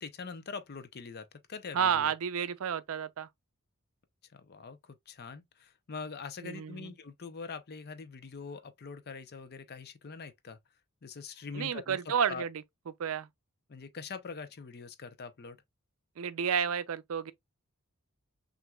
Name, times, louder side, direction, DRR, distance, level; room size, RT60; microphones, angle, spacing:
voice 1, 0.0-2.1 4.3-10.6 11.0-12.0 12.3-12.4 13.7-15.6, left 5 dB, 45° left, 0.6 m, -43 dB
voice 2, 1.7-3.3 6.4-6.9 11.5-12.5 13.0-13.3 16.2-17.3, right 7 dB, 65° right, 0.4 m, -31 dB
5.9 x 2.6 x 2.2 m
head